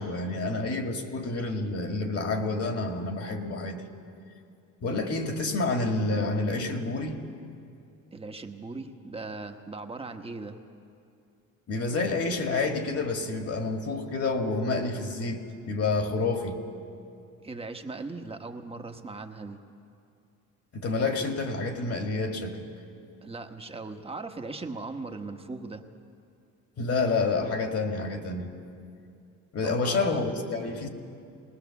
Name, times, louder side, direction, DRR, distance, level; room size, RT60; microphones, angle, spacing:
voice 1, 0.0-3.8 4.8-7.2 11.7-16.6 20.7-22.7 26.8-28.5 29.5-30.9, left 3 dB, 45° left, 4 dB, 2.1 m, -29 dB
voice 2, 8.1-10.6 17.4-19.6 23.2-25.9 29.6-30.2, right 3 dB, 15° right, 5 dB, 1.2 m, -39 dB
20.0 x 19.5 x 7.1 m, 2.5 s
cardioid pair, 120°, 33 cm